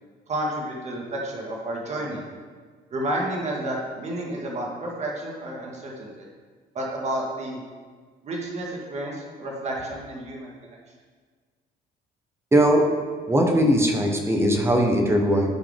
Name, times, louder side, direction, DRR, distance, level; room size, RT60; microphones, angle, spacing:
voice 1, 0.3-2.2 2.9-6.3 6.8-7.6 8.2-10.8, right 1 dB, 40° right, -2 dB, 1.8 m, -31 dB
voice 2, 12.5-12.9 13.3-15.5, equal, 15° right, 2 dB, 1.2 m, -19 dB
12.0 x 4.8 x 3.6 m, 1.5 s
cardioid pair, 110°, 17 cm